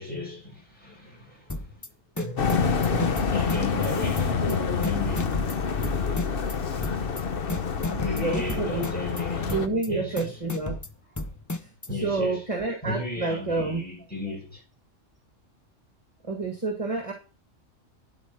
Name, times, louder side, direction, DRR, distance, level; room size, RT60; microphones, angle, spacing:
voice 1, 0.0-1.8 2.1-5.3 7.8-9.5 9.9-10.3 11.9-12.4 12.8-14.6, left 2 dB, 5° left, 6.1 m, -35 dB
sound 1, 1.5-1.9 2.2-3.9 4.2-4.5 4.8-6.5 6.8-7.2 7.5-9.2 9.5-9.9 10.2-11.9, left 2 dB, 25° left, 0.4 m, -33 dB
sound 2, 2.4-9.7, left 6 dB, 50° left, 1.1 m, -27 dB
voice 2, 7.9-8.9 9.4-10.8 12.0-13.8 16.2-17.1, right 3 dB, 25° right, 1.7 m, -29 dB
12.0 x 4.5 x 5.8 m
omnidirectional pair, 1.3 m